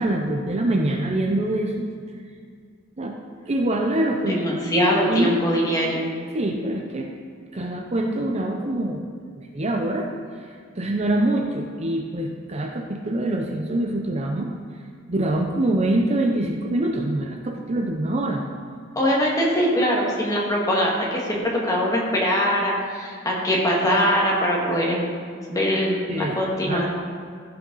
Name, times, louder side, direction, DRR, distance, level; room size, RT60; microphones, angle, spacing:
voice 1, 0.0-1.9 3.0-3.2 3.5-5.4 6.3-7.1 7.5-9.0 9.4-10.1 10.4-14.5 15.1-18.4 26.1-26.8, right 1 dB, 35° right, 2 dB, 0.6 m, -25 dB
voice 2, 4.3-6.1 19.0-25.0 25.5-26.9, equal, 20° left, -4 dB, 1.9 m, -22 dB
15.0 x 5.7 x 4.0 m, 2.1 s
head